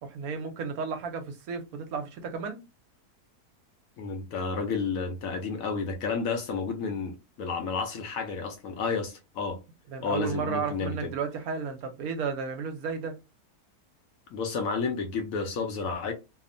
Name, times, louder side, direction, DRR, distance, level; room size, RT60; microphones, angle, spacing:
voice 1, 0.0-2.6 9.9-13.1, right 5 dB, 70° right, 1.0 m, -33 dB
voice 2, 4.0-9.6 10.0-11.1 14.3-16.1, left 4 dB, 70° left, 0.9 m, -31 dB
2.8 x 2.0 x 2.5 m
omnidirectional pair, 1.6 m